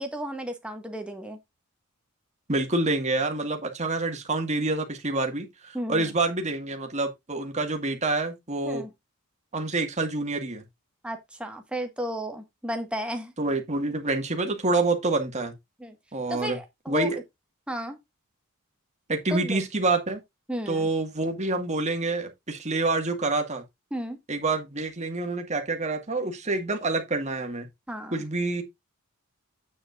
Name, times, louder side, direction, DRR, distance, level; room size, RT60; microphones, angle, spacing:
voice 1, 0.0-1.4 5.7-6.1 8.6-8.9 11.0-13.3 15.8-15.9 16.3-17.2 17.7-18.0 19.3-19.6 20.5-20.9 23.9-24.2 27.9-28.2, equal, 5° right, 1.5 m, -33 dB
voice 2, 2.5-8.9 9.5-10.6 13.4-15.5 16.1-16.6 16.9-17.2 19.1-20.2 20.7-23.6 24.3-27.7 28.1-28.6, right 2 dB, 30° right, 1.8 m, -27 dB
8.6 x 8.1 x 2.5 m
head